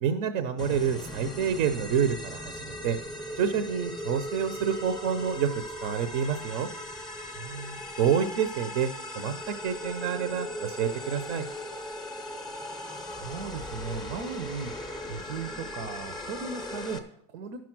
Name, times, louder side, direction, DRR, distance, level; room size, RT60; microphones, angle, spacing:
voice 1, 0.0-3.0 3.4-5.5 5.8-6.7 8.0-11.4, right 7 dB, 50° right, 10 dB, 0.8 m, -28 dB
sound 1, 0.6-17.0, left 1 dB, ahead, 0.6 m, -38 dB
voice 2, 7.4-7.9 13.1-17.6, right 5 dB, 80° right, 8 dB, 1.1 m, -38 dB
12.0 x 6.2 x 6.0 m, 0.71 s
cardioid pair, 170°, 46 cm